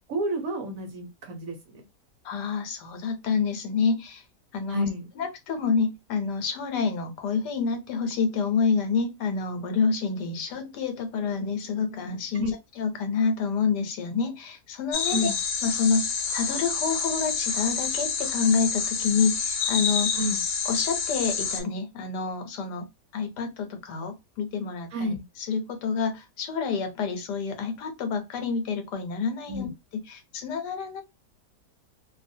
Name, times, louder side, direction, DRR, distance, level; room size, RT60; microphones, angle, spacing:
voice 1, 0.1-1.8 4.7-5.1 12.3-12.5 15.1-15.4 20.1-20.4 24.9-25.2 29.5-29.7, equal, 65° right, 1.0 m, -30 dB
voice 2, 2.2-4.2 4.5-4.9 5.2-12.5 12.8-15.2 15.6-20.1 20.6-22.9 23.1-25.1 25.4-29.7 30.1-31.0, left 5 dB, 80° left, 1.3 m, -28 dB
sound 1, 14.9-21.6, left 6 dB, 60° left, 0.8 m, -28 dB
2.7 x 2.4 x 2.6 m
omnidirectional pair, 1.8 m